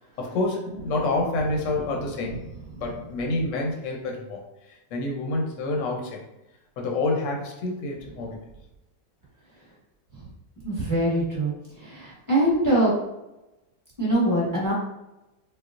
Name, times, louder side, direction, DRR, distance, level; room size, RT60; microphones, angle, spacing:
voice 1, 0.2-2.4 2.7-4.4 4.7-6.2 6.8-8.4, left 2 dB, 65° left, 0 dB, 0.8 m, -28 dB
voice 2, 10.6-12.9 14.0-14.7, right 1 dB, 15° right, -8 dB, 1.0 m, -23 dB
4.2 x 2.1 x 2.5 m, 0.94 s
omnidirectional pair, 2.0 m